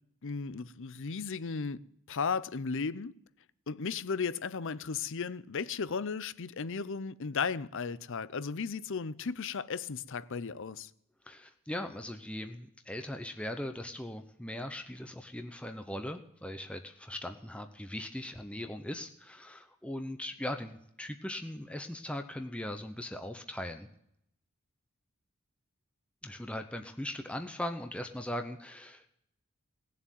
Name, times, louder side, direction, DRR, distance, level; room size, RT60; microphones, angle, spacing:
voice 1, 0.2-1.8 2.1-3.1 3.7-10.9, left 5 dB, 60° left, 0.6 m, -35 dB
voice 2, 11.3-23.9 26.2-29.1, left 1 dB, 5° left, 0.8 m, -39 dB
18.5 x 7.5 x 9.2 m
head